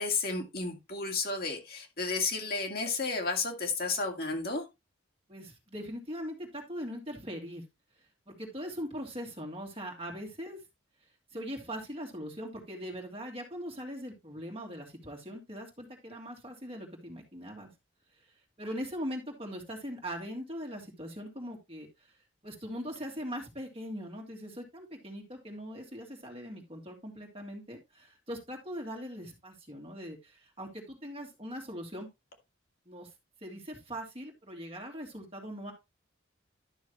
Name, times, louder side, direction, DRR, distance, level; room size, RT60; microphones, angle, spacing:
voice 1, 0.0-4.6, left 4 dB, 50° left, 2 dB, 2.2 m, -32 dB
voice 2, 5.3-7.6 8.3-10.6 11.3-17.7 18.6-21.9 22.4-32.1 32.9-33.1 33.4-35.7, equal, 30° right, 1 dB, 2.6 m, -41 dB
12.0 x 6.3 x 3.1 m, 0.22 s
head